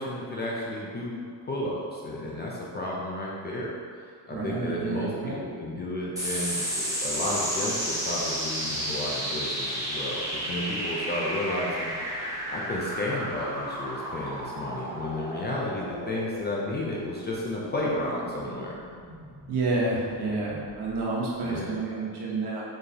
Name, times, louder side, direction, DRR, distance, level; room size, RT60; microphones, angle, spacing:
voice 1, 0.0-3.7 4.0-18.8 21.4-21.8, left 1 dB, 25° left, -4 dB, 0.3 m, -32 dB
voice 2, 4.3-5.4 19.5-22.6, right 3 dB, 65° right, -5 dB, 1.1 m, -29 dB
sound 1, 6.2-21.0, equal, 10° right, 0.8 m, -33 dB
4.2 x 3.3 x 2.8 m, 2.1 s
cardioid pair, 155°, 42 cm